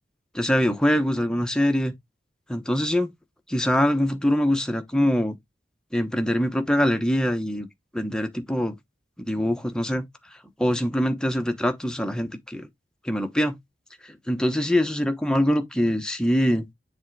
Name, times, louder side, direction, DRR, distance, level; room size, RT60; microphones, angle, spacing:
voice 1, 0.3-1.9 2.5-3.1 3.5-5.4 5.9-7.7 7.9-8.8 9.2-10.1 10.6-12.7 13.0-13.6 14.0-16.7, equal, 5° left, 0.9 m, -23 dB
7.3 x 3.2 x 4.6 m
head